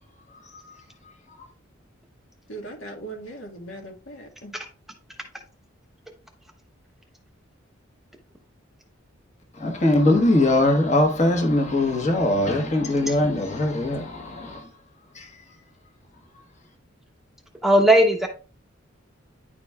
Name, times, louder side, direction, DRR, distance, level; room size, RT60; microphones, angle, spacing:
voice 1, 2.5-4.5, right 2 dB, 75° left, 1.6 m, -39 dB
voice 2, 9.6-14.6 15.1-15.3, left 1 dB, 35° left, 1.3 m, -21 dB
voice 3, 17.6-18.3, right 1 dB, ahead, 0.7 m, -17 dB
9.9 x 5.0 x 2.3 m
head